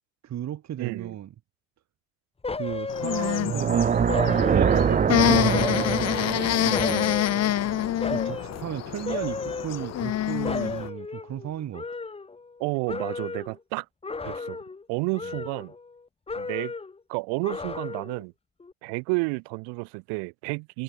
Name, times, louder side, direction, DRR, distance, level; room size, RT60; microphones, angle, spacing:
voice 1, 0.2-1.3 2.6-6.0 6.6-7.3 8.1-11.9, right 11 dB, 40° right, 3.4 m, -35 dB
voice 2, 0.8-1.2 12.6-13.9 14.2-14.6 14.9-15.7 16.4-16.7 17.1-18.3 18.8-20.8, right 33 dB, 70° right, 6.3 m, -31 dB
sound 1, 2.4-3.7 4.1-5.2 5.5-7.6 8.0-8.6 9.1-10.2 10.4-12.6 12.9-13.6 14.0-14.8 15.1-16.0 16.3-17.0 17.4-18.2 18.6-18.7, left 4 dB, 15° left, 2.2 m, -34 dB
sound 2, 2.9-10.9, left 12 dB, 40° left, 1.5 m, -27 dB
sound 3, 3.4-8.5, right 7 dB, 20° right, 0.7 m, -25 dB
supercardioid pair, 110°, 41 cm